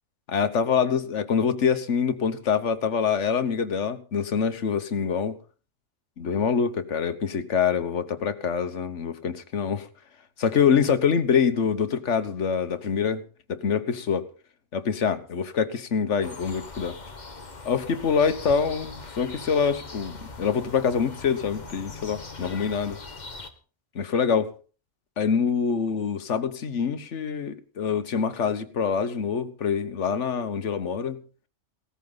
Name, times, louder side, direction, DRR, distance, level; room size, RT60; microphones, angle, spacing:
voice 1, 0.3-5.4 6.2-9.9 10.4-14.3 14.7-17.0 17.6-23.0 23.9-24.5 25.2-31.2, left 6 dB, 80° left, 1.5 m, -25 dB
sound 1, 16.2-23.5, left 3 dB, 40° left, 1.4 m, -41 dB
17.5 x 14.0 x 3.9 m
omnidirectional pair, 1.2 m